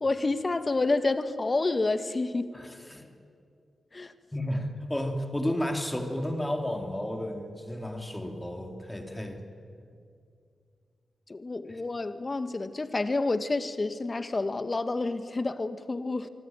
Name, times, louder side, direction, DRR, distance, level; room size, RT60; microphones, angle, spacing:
voice 1, 0.0-2.6 3.9-4.1 11.3-16.3, left 3 dB, 40° left, 10 dB, 1.9 m, -29 dB
voice 2, 2.5-3.1 4.3-9.4 11.7-11.8, left 1 dB, 15° left, 4 dB, 3.8 m, -32 dB
25.0 x 24.5 x 9.3 m, 2.4 s
supercardioid pair, 40°, 0 cm